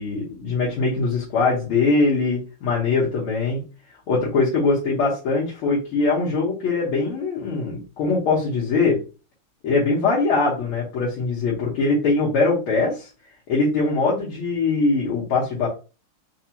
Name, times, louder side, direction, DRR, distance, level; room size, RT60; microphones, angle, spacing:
voice 1, 0.0-3.6 4.1-9.0 9.6-13.1 13.5-15.7, left 3 dB, 75° left, -6 dB, 1.9 m, -22 dB
4.6 x 2.3 x 2.9 m, 0.32 s
omnidirectional pair, 2.4 m